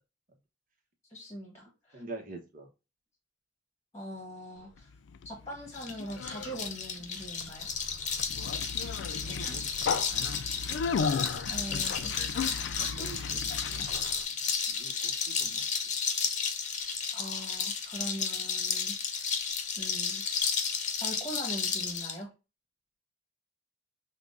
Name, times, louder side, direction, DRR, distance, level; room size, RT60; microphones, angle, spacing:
voice 1, 1.1-2.0 3.9-4.9 5.2-7.7 11.5-12.1 17.1-19.4 19.8-20.2 20.9-22.3, equal, 15° left, 0 dB, 1.3 m, -41 dB
voice 2, 1.9-2.7 9.2-10.4 11.3-11.5 12.8-13.8 14.4-15.9, right 2 dB, 45° right, 4 dB, 1.0 m, -47 dB
Conversation, 4.8-14.2, left 5 dB, 65° left, 0.3 m, -35 dB
sound 1, 5.7-22.2, left 6 dB, 40° left, 0.8 m, -33 dB
5.8 x 2.3 x 2.5 m, 0.29 s
head